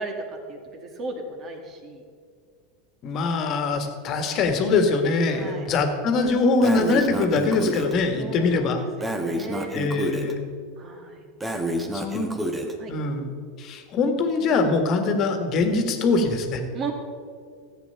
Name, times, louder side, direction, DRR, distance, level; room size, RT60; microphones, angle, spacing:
voice 1, 0.0-2.0 5.3-5.7 8.2-9.7 10.8-11.2 11.7-12.3 12.8-12.9 16.7-16.9, right 3 dB, 35° right, 4 dB, 2.1 m, -36 dB
voice 2, 3.0-8.8 9.7-10.4 11.9-12.3 12.9-13.3 13.6-16.6, left 3 dB, 40° left, 6 dB, 1.7 m, -23 dB
Breathing, 6.6-7.9 9.0-10.3 11.4-12.7, equal, 15° right, 1.4 m, -28 dB
14.5 x 8.3 x 5.7 m, 2.1 s
figure-of-eight pair, 85°, 0 cm